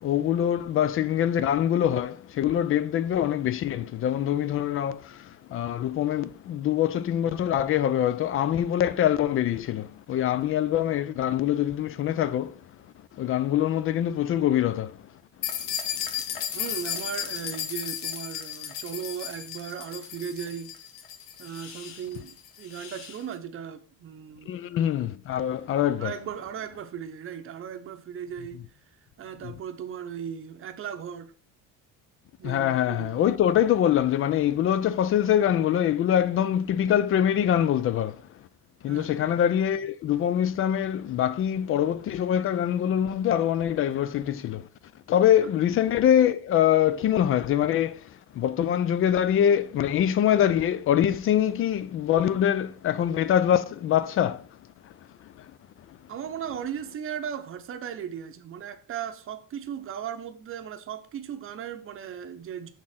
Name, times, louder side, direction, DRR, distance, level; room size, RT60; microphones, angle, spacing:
voice 1, 0.0-12.5 13.2-15.0 24.5-26.1 29.4-29.5 32.4-38.2 38.8-44.7 45.1-48.0 48.3-54.4, left 10 dB, 40° left, 0.4 m, -24 dB
sound 1, 15.4-23.2, left 9 dB, 70° left, 1.2 m, -35 dB
voice 2, 16.5-20.7 21.4-24.6 26.0-28.6 29.2-31.3 32.4-33.3 38.9-39.1 56.1-62.7, right 8 dB, 35° right, 0.8 m, -37 dB
6.5 x 3.7 x 5.6 m
cardioid pair, 155°, 35 cm